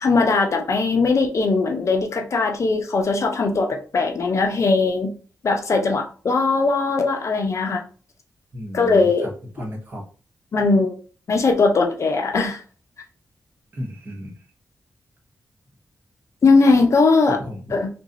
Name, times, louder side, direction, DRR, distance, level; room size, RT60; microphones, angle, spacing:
voice 1, 0.0-5.1 5.4-7.8 8.7-9.3 10.5-11.0 11.3-12.6 16.4-17.4 17.7-17.9, left 3 dB, 50° left, 0.6 m, -19 dB
voice 2, 8.5-9.1 9.5-10.0 13.7-14.3 17.4-17.8, equal, 30° right, 1.1 m, -33 dB
3.0 x 2.6 x 3.9 m
wide cardioid pair, 150°, 6 cm